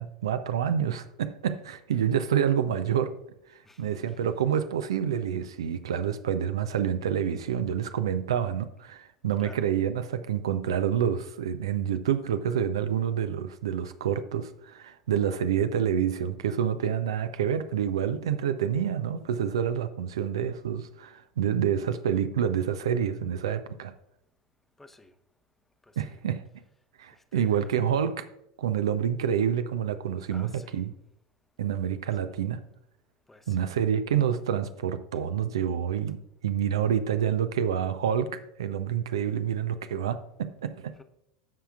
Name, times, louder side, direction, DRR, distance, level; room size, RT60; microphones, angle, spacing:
voice 1, 0.0-3.2 3.5-23.9 26.0-26.4 27.0-28.3 28.6-30.9 31.6-32.6 33.5-40.9, right 8 dB, 70° right, 10 dB, 0.6 m, -28 dB
voice 2, 3.6-4.2 9.4-9.6 24.8-25.1 25.8-26.2 27.1-27.8 30.3-30.9 33.3-33.8 41.0-41.1, left 2 dB, 10° left, 9 dB, 0.8 m, -52 dB
15.0 x 5.7 x 2.4 m, 0.80 s
figure-of-eight pair, 80°, 3 cm